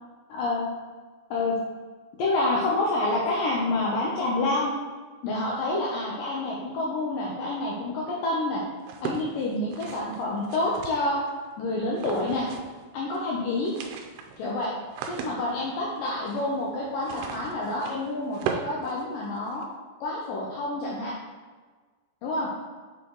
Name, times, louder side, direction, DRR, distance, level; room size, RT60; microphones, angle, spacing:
voice 1, 0.3-0.6 1.3-1.5 2.2-4.7 5.2-8.6 9.0-11.2 11.6-12.5 12.9-13.7 14.4-14.7 15.1-19.6 20.0-21.1 22.2-22.5, left 2 dB, 85° left, -3 dB, 1.9 m, -28 dB
sound 1, 8.8-11.3 11.9-12.8 13.1-13.2 13.5-19.6, right 7 dB, 85° right, 2.4 m, -38 dB
7.3 x 3.9 x 4.6 m, 1.4 s
omnidirectional pair, 5.1 m